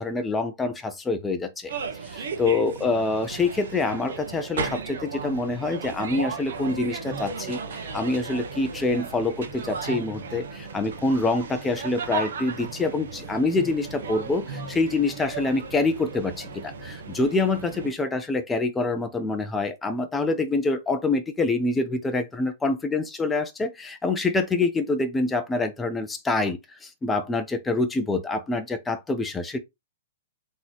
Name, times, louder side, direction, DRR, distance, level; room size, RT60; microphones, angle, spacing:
voice 1, 0.0-1.7 2.0-29.6, left 3 dB, 10° left, 0.8 m, -26 dB
sound 1, 1.7-17.9, right 5 dB, 65° right, 1.4 m, -35 dB
3.9 x 3.9 x 3.0 m
hypercardioid pair, 120°, 0 cm